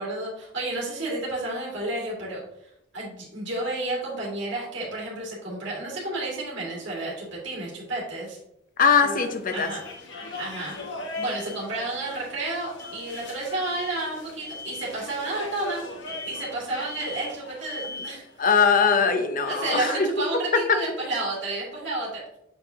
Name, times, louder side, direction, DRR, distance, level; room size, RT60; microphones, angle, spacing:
voice 1, 0.0-8.4 9.0-9.2 9.5-9.8 10.2-15.8 16.2-18.3 19.1-22.2, right 2 dB, 70° right, -5 dB, 2.3 m, -31 dB
sound 1, 6.3-6.4 9.5-10.1 10.3-10.9 11.1-11.6 12.8-13.3 13.6-14.1 14.4-14.9 16.1-16.6 16.9-17.4 17.7-18.2, left 4 dB, 15° left, 1.0 m, -41 dB
voice 2, 8.8-9.7 18.4-20.1 20.7-20.8, left 5 dB, 45° left, 7 dB, 0.7 m, -21 dB
sound 2, 9.0-18.7, left 2 dB, 75° left, 1.3 m, -40 dB
7.8 x 4.7 x 2.8 m, 0.80 s
head